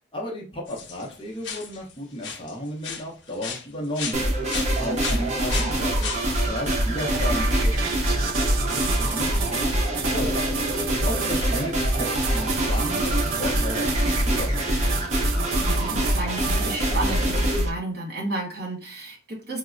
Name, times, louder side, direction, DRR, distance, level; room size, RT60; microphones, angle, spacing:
voice 1, 0.0-4.2 4.8-10.5 11.0-14.8, left 1 dB, 25° left, -1 dB, 0.6 m, -34 dB
sound 1, 0.7-1.1 1.4-1.9 2.2-2.5 2.8-4.2 4.5-6.2, left 6 dB, 70° left, 0.6 m, -34 dB
sound 2, 4.1-17.7, right 1 dB, 35° right, 0.7 m, -24 dB
voice 2, 4.7-5.2 15.6-19.6, right 2 dB, 55° right, -3 dB, 1.3 m, -32 dB
sound 3, 7.0-17.0, right 5 dB, 85° right, 0.5 m, -32 dB
3.9 x 2.1 x 2.4 m, 0.35 s
head